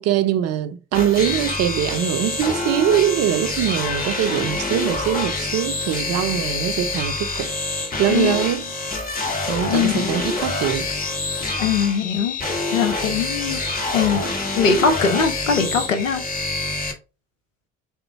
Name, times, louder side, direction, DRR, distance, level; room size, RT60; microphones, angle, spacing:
voice 1, 0.0-7.5 8.0-8.7 9.5-10.9, right 10 dB, 45° right, 0.5 m, -22 dB
sound 1, 0.9-16.9, left 2 dB, 25° left, 1.0 m, -26 dB
voice 2, 9.6-10.0 11.5-12.4 12.7-13.6 13.9-14.2 14.6-16.2, left 6 dB, 90° left, 0.6 m, -21 dB
3.8 x 2.1 x 4.3 m
figure-of-eight pair, 50°, 38 cm